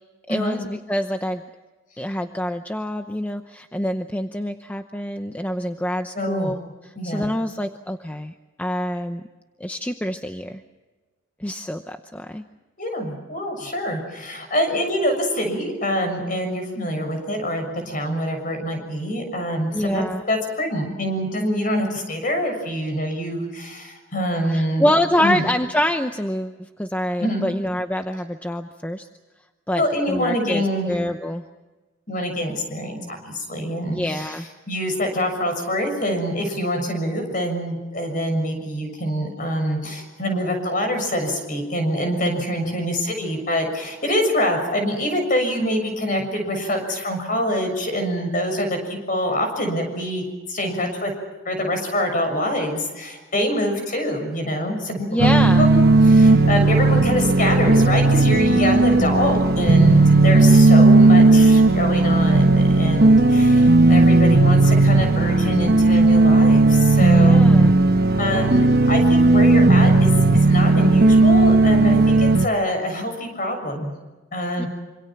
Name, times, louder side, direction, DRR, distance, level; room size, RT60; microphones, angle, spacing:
voice 1, 0.3-1.4 2.0-6.6 7.0-8.3 8.6-9.2 9.6-10.6 11.4-12.4 19.7-20.2 24.5-29.1 29.7-31.4 33.9-34.5 55.1-55.7 67.1-67.8 74.6-74.7, left 1 dB, 10° left, 6 dB, 0.8 m, -26 dB
voice 2, 6.1-6.5 7.0-7.3 12.8-24.9 25.2-25.4 27.2-27.4 29.7-30.9 32.1-34.4 34.7-51.1 51.5-55.3 55.6-67.4 68.2-70.1 70.5-73.9 74.3-74.7, equal, 40° left, 5 dB, 6.9 m, -25 dB
sound 1, 55.2-72.5, right 2 dB, 50° right, 1.2 m, -15 dB
26.5 x 26.5 x 6.0 m, 1.2 s
head